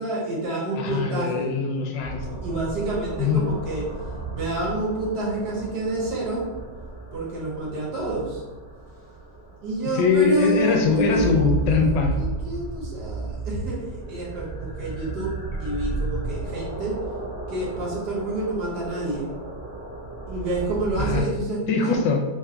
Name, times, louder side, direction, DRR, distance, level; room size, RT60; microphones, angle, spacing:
voice 1, 0.0-1.5 2.4-3.8 4.3-6.4 7.1-8.4 9.6-17.0 17.5-19.3 20.3-21.9, right 2 dB, 70° right, -4 dB, 1.6 m, -28 dB
voice 2, 0.8-2.4 3.2-3.5 9.9-12.2 21.0-21.2 21.7-22.2, left 5 dB, 85° left, 2 dB, 1.3 m, -22 dB
sound 1, 2.0-21.2, right 3 dB, 25° right, 1.1 m, -34 dB
3.5 x 2.2 x 3.7 m, 1.2 s
omnidirectional pair, 1.9 m